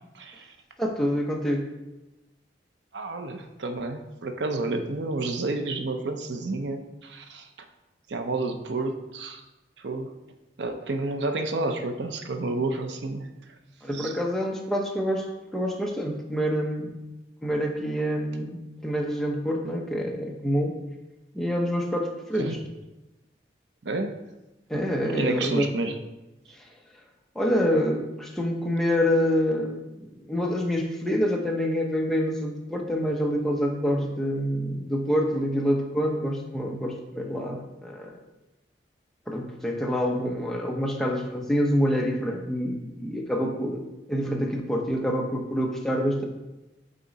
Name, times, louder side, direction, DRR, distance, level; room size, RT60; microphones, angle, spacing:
voice 1, 0.1-0.5 2.9-7.5 8.1-9.4 9.8-10.1 10.6-13.3 13.9-14.1 22.4-22.6 23.8-24.1 25.1-25.9, right 2 dB, 90° right, 6 dB, 0.7 m, -30 dB
voice 2, 0.8-1.6 13.8-15.3 15.5-16.9 17.4-20.7 21.3-22.6 24.7-25.7 26.5-26.7 27.3-38.1 39.3-46.3, equal, ahead, 0 dB, 0.7 m, -27 dB
8.2 x 3.8 x 4.0 m, 1.0 s
head